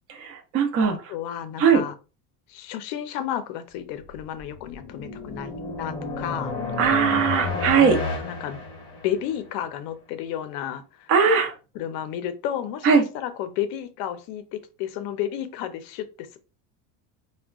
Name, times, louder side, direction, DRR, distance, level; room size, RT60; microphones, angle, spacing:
voice 1, 0.1-1.0 1.6-1.8 6.8-8.0 11.1-11.5 12.8-13.0, right 6 dB, 35° right, 3 dB, 0.6 m, -19 dB
voice 2, 1.1-1.9 2.5-6.5 8.2-8.6 9.0-11.1 11.7-16.4, left 10 dB, 55° left, 10 dB, 0.6 m, -32 dB
sound 1, 4.2-9.4, left 3 dB, 15° left, 0.9 m, -31 dB
3.5 x 2.2 x 2.3 m, 0.33 s
cardioid pair, 155°, 41 cm